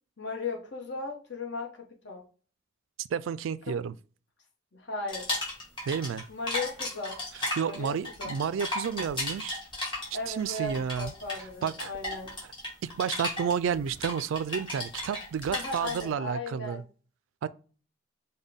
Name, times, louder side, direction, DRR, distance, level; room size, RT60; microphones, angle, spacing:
voice 1, 0.2-2.2 3.7-3.8 4.7-5.3 6.3-7.2 7.6-8.3 10.1-12.3 15.5-16.8, left 3 dB, 60° left, 1.0 m, -36 dB
voice 2, 3.0-3.9 5.9-6.2 7.6-9.6 10.3-11.1 11.6-11.9 12.8-16.8 17.4-17.5, right 7 dB, 85° right, 0.3 m, -31 dB
sound 1, 5.1-6.2 6.5-16.0, left 1 dB, 25° left, 1.7 m, -35 dB
5.4 x 2.2 x 3.5 m
head